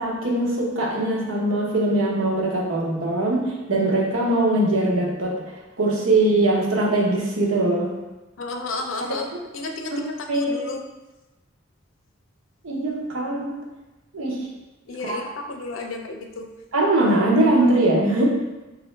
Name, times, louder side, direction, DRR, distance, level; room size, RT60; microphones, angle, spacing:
voice 1, 0.0-5.4 5.8-7.9 9.9-10.0 10.3-10.5 12.6-13.5 14.1-14.4 15.0-15.2 16.7-18.2, right 2 dB, 90° right, -2 dB, 0.8 m, -21 dB
voice 2, 8.4-9.3 9.5-10.8 14.9-16.5, left 3 dB, 70° left, 3 dB, 0.5 m, -32 dB
4.2 x 2.5 x 3.1 m, 1.1 s
head